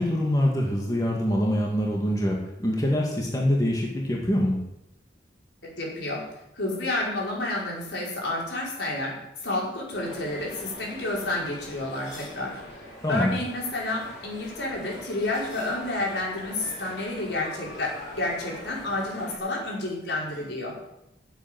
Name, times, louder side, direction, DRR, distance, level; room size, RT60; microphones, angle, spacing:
voice 1, 0.0-4.6 13.0-13.3, equal, 20° left, -2 dB, 2.3 m, -24 dB
voice 2, 5.8-6.2 6.6-9.2 9.4-12.6 13.1-20.8, left 2 dB, 75° left, -3 dB, 5.5 m, -30 dB
sound 1, 9.9-19.4, left 1 dB, 55° left, 7.5 m, -43 dB
12.5 x 8.3 x 9.2 m, 0.88 s
head